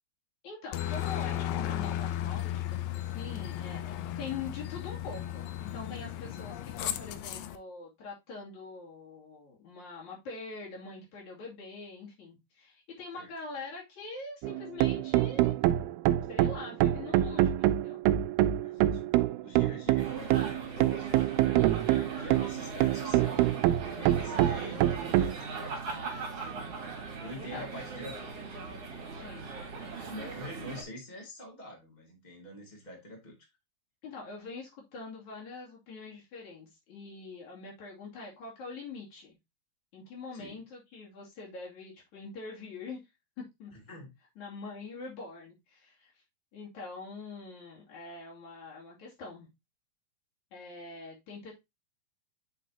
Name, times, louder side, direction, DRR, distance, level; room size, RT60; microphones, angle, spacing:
voice 1, 0.4-15.5 16.3-18.0 27.0-27.7 29.1-29.5 34.0-39.4 39.9-43.0 43.6-43.7 44.4-46.1 46.5-49.5 50.5-51.5, left 4 dB, 50° left, -4 dB, 3.7 m, -44 dB
Aircraft, 0.7-7.6, left 12 dB, 85° left, 1.9 m, -35 dB
sound 1, 14.4-25.3, right 14 dB, 80° right, 2.4 m, -26 dB
voice 2, 18.6-23.5 23.8-26.6 27.0-28.3 30.1-33.4 40.3-40.5 43.7-44.1, equal, 15° left, 0 dB, 1.7 m, -46 dB
sound 2, 20.0-30.8, right 4 dB, 45° right, 2.6 m, -40 dB
8.3 x 5.6 x 2.8 m, 0.21 s
omnidirectional pair, 4.6 m